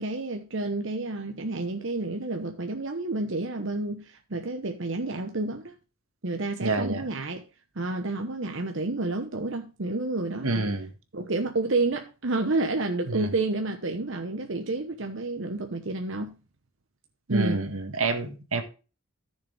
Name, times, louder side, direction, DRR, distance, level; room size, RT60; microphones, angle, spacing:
voice 1, 0.0-5.7 6.2-7.4 7.7-10.7 11.1-16.3 17.3-17.6, right 2 dB, 60° right, 1.0 m, -30 dB
voice 2, 6.6-7.0 10.4-10.9 13.1-13.3 17.3-18.6, right 3 dB, 85° right, 1.8 m, -28 dB
14.0 x 6.7 x 3.3 m
head